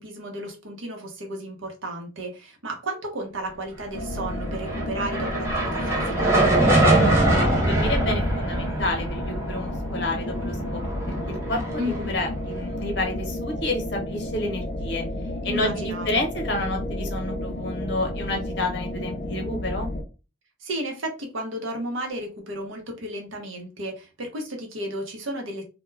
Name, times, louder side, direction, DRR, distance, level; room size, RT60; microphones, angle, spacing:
voice 1, 0.0-6.4 11.8-12.2 15.4-16.3 20.6-25.6, right 1 dB, 80° right, 2 dB, 0.8 m, -33 dB
sound 1, 3.9-20.0, left 1 dB, 40° left, 0.4 m, -32 dB
sound 2, 4.4-12.8, right 1 dB, 15° right, 0.6 m, -24 dB
voice 2, 6.7-10.8 11.3-15.0 15.4-19.9, left 1 dB, 60° left, 2 dB, 0.8 m, -30 dB
2.2 x 2.2 x 3.1 m, 0.31 s
head